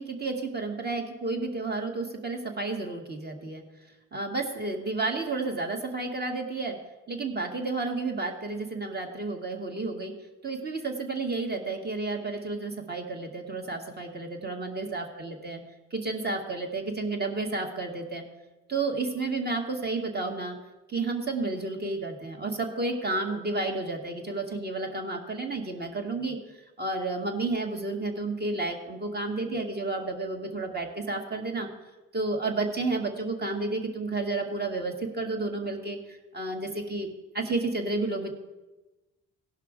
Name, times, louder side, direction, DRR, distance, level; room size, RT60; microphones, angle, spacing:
voice 1, 0.0-3.6 4.1-6.8 7.1-10.1 10.4-15.6 15.9-18.2 18.7-20.5 20.9-31.7 32.1-37.1 37.3-38.3, right 3 dB, 35° right, 3 dB, 1.9 m, -31 dB
17.0 x 5.7 x 5.0 m, 1.1 s
cardioid pair, 90°, 30 cm